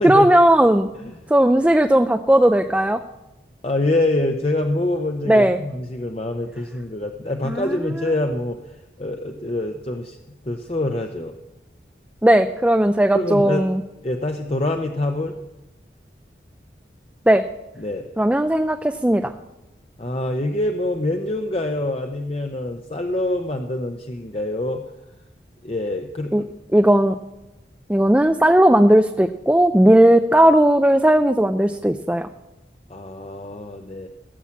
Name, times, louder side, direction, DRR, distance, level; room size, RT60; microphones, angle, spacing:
voice 1, 0.0-0.9 1.3-3.0 5.3-5.6 7.5-7.7 12.2-13.8 17.3-17.4 18.2-19.3 26.3-26.4 26.7-27.2 27.9-32.3, right 1 dB, 5° right, 7 dB, 0.4 m, -16 dB
voice 2, 3.6-8.6 9.0-10.2 10.4-11.3 13.1-13.7 14.0-15.3 17.8-18.1 20.0-24.8 25.6-26.5 32.9-34.1, left 1 dB, 35° left, 4 dB, 0.7 m, -25 dB
17.0 x 7.2 x 7.2 m, 0.99 s
head